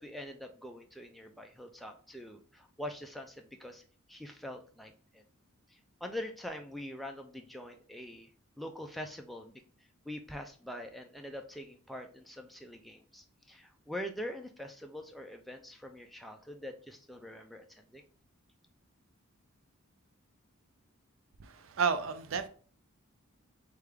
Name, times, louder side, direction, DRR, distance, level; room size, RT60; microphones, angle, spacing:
voice 1, 0.0-3.8 4.1-5.2 5.7-8.3 8.6-9.5 10.1-18.0, left 1 dB, ahead, 0.3 m, -44 dB
voice 2, 21.4-22.5, right 5 dB, 60° right, 0.4 m, -31 dB
3.5 x 3.3 x 3.4 m
head